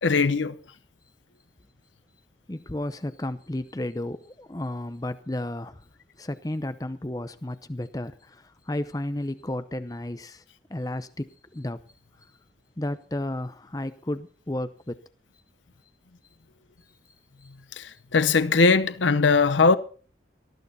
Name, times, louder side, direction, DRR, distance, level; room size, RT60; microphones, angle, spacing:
voice 1, 0.0-0.6 17.7-19.8, left 4 dB, 90° left, 0.8 m, -20 dB
voice 2, 2.5-5.9 6.2-10.4 10.7-11.8 12.2-12.3 12.8-15.0 17.4-17.5, left 1 dB, 20° left, 0.6 m, -33 dB
19.0 x 13.5 x 4.1 m
head